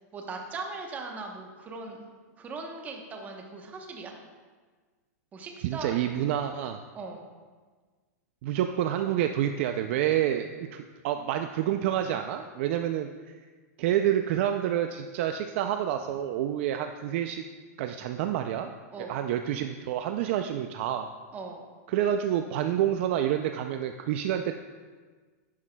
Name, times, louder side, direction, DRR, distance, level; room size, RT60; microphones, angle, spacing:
voice 1, 0.1-2.0 2.4-4.1 5.3-6.0 6.9-7.3 18.9-19.2 21.3-21.7, right 3 dB, 20° right, 2 dB, 0.9 m, -39 dB
voice 2, 5.6-6.8 8.4-13.1 13.8-17.4 17.8-18.7 19.0-21.1 21.9-24.5, right 11 dB, 45° right, 7 dB, 0.4 m, -28 dB
11.0 x 9.5 x 2.2 m, 1.4 s
supercardioid pair, 155°, 9 cm